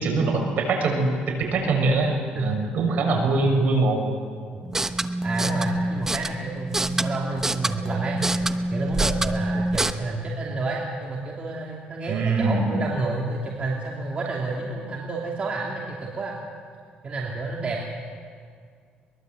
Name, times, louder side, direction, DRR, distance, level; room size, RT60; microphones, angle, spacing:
voice 1, 0.0-4.1 12.1-12.7, right 3 dB, 60° right, 3 dB, 6.1 m, -23 dB
sound 1, 4.6-9.9, right 1 dB, 15° right, 1.0 m, -26 dB
voice 2, 5.2-8.2 8.7-16.3 17.0-17.9, right 3 dB, 35° right, -2 dB, 3.0 m, -30 dB
23.0 x 21.5 x 8.0 m, 2.1 s
cardioid pair, 115°, 3 cm